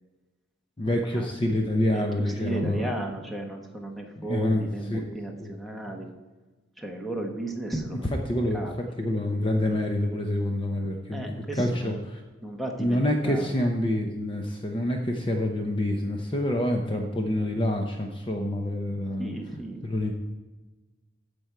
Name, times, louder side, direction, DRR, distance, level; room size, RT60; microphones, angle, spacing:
voice 1, 0.8-2.9 4.2-5.1 5.4-5.5 5.9-6.0 8.3-8.6 9.0-12.2 12.8-19.3 19.8-20.1, left 1 dB, 25° left, 2 dB, 0.8 m, -27 dB
voice 2, 1.9-6.1 6.8-8.1 8.5-8.8 11.1-12.0 12.4-13.5 19.2-19.8, right 2 dB, ahead, 1 dB, 1.2 m, -34 dB
14.0 x 5.3 x 4.6 m, 1.2 s
head